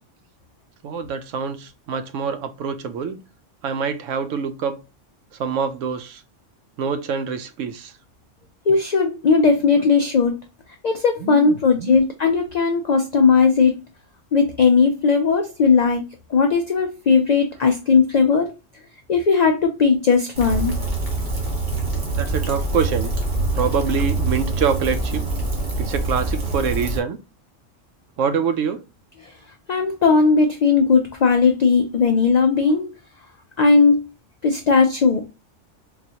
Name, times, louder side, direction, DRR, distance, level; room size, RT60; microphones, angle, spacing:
voice 1, 0.8-3.2 3.6-4.8 5.4-6.2 6.8-7.9 9.6-9.9 11.2-12.0 22.1-23.1 23.5-25.2 25.8-27.2 28.2-28.8 32.6-32.8, right 6 dB, 90° right, 0.9 m, -25 dB
voice 2, 8.7-10.3 10.8-13.8 14.3-16.0 16.3-18.5 19.1-20.8 29.2-29.3 29.7-32.9 33.6-34.0 34.4-35.3, left 5 dB, 85° left, 0.3 m, -17 dB
Rain, 20.3-27.0, right 2 dB, 45° right, 1.1 m, -24 dB
4.0 x 2.3 x 2.8 m
omnidirectional pair, 1.3 m